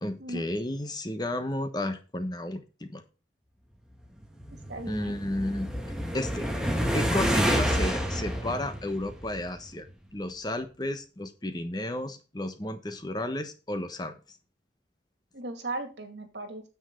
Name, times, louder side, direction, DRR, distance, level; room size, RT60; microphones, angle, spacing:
voice 1, 0.0-3.0 4.9-5.7 6.1-6.5 6.9-9.9 10.1-14.4, left 1 dB, 20° left, 9 dB, 1.2 m, -32 dB
sound 1, 4.2-9.7, equal, 5° right, 1.7 m, -29 dB
voice 2, 4.7-5.2 15.3-16.6, right 2 dB, 75° right, 6 dB, 2.5 m, -37 dB
9.6 x 7.5 x 3.8 m, 0.32 s
head